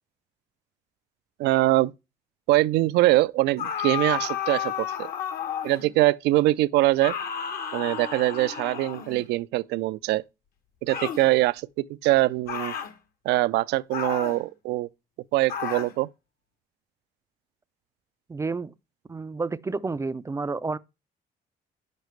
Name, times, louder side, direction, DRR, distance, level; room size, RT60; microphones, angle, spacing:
voice 1, 1.4-1.9 2.5-5.1 5.6-7.2 7.7-10.2 10.8-11.7 12.0-12.7 13.2-14.9 15.3-16.1, right 17 dB, 80° right, 0.4 m, -23 dB
sound 1, 3.6-5.9 7.0-9.3 10.9-11.3 12.5-12.9 13.9-14.4 15.5-16.0, left 8 dB, 60° left, 1.1 m, -32 dB
voice 2, 18.3-18.7 19.1-20.8, right 4 dB, 15° right, 0.3 m, -30 dB
9.1 x 6.6 x 3.1 m
cardioid pair, 110°, 17 cm